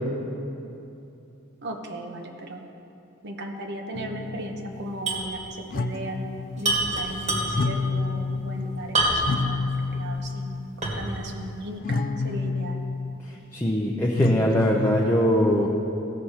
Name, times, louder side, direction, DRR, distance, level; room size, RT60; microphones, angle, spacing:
voice 1, 1.6-2.6 3.2-6.3 6.6-12.8, right 1 dB, 55° right, 3 dB, 0.9 m, -36 dB
sound 1, 3.9-5.5 5.7-7.1 7.4-10.7 11.8-13.2 14.1-15.1, left 3 dB, 45° left, 0.3 m, -29 dB
sound 2, 5.1-5.3 5.6-5.7 6.6-7.8 8.9-9.5 10.0-10.1 10.8-11.2, right 2 dB, 35° right, 1.8 m, -25 dB
voice 2, 13.5-15.7, equal, 10° left, -3 dB, 0.7 m, -22 dB
15.5 x 6.3 x 4.3 m, 2.8 s
head